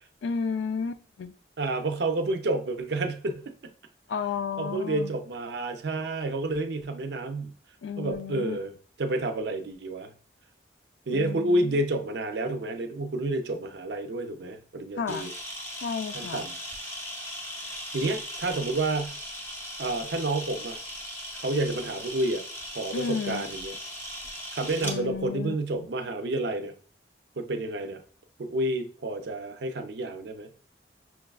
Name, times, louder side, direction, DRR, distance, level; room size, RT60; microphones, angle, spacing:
voice 1, 0.2-1.3 4.1-5.1 7.8-8.6 11.1-11.7 15.0-15.3 15.7-16.5 22.9-23.5 24.8-25.5, left 6 dB, 85° left, 0.3 m, -32 dB
voice 2, 1.6-3.5 4.6-7.6 8.0-8.7 9.0-10.1 11.1-15.3 16.1-16.6 17.6-19.2 19.8-20.8 21.3-22.4 22.7-23.8 24.5-26.7 27.4-28.0 28.4-30.5, right 2 dB, 70° right, 0.5 m, -29 dB
Camera, 15.1-25.0, equal, 15° left, 0.6 m, -38 dB
5.8 x 2.3 x 2.3 m
head